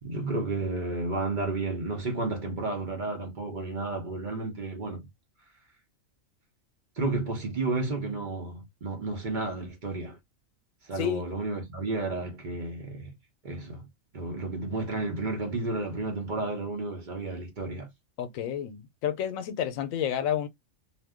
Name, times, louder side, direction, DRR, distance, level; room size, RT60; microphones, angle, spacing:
voice 1, 0.0-5.1 7.0-10.2 10.8-13.1 13.4-13.9 14.1-17.9, right 2 dB, 45° right, 0.8 m, -32 dB
voice 2, 11.0-11.3 18.2-20.5, left 10 dB, 90° left, 1.0 m, -30 dB
2.5 x 2.2 x 3.5 m
omnidirectional pair, 1.4 m